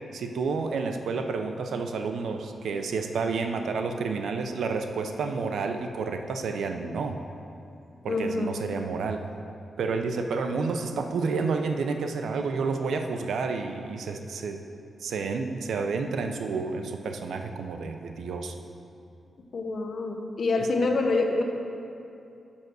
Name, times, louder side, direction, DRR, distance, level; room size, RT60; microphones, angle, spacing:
voice 1, 0.1-7.2 8.0-9.2 9.8-14.6 15.0-18.5, right 4 dB, 85° right, 6 dB, 0.6 m, -30 dB
voice 2, 8.1-8.5 19.5-21.4, left 3 dB, 55° left, 3 dB, 0.9 m, -26 dB
7.2 x 6.6 x 6.2 m, 2.7 s
cardioid pair, 95°, 0 cm